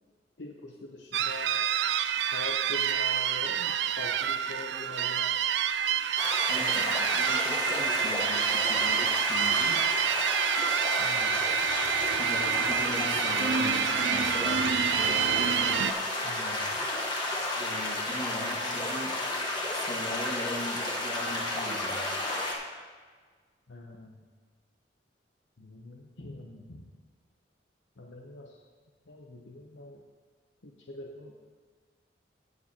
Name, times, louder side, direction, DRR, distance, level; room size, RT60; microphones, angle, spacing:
voice 1, 0.4-1.7 2.3-5.3 6.6-6.9 11.0-11.3 16.2-16.8 23.7-24.2 25.6-26.8 28.0-28.6 29.1-30.0 30.6-31.3, left 2 dB, 80° left, -1 dB, 0.9 m, -43 dB
sound 1, 1.1-15.9, right 8 dB, 70° right, 0.4 m, -28 dB
sound 2, 6.2-22.5, left 2 dB, 25° left, 1.4 m, -32 dB
voice 2, 6.5-9.8 12.1-14.9 17.5-19.2 19.7-22.2, left 1 dB, 40° left, -2 dB, 1.7 m, -40 dB
18.0 x 6.8 x 2.9 m, 1.5 s
head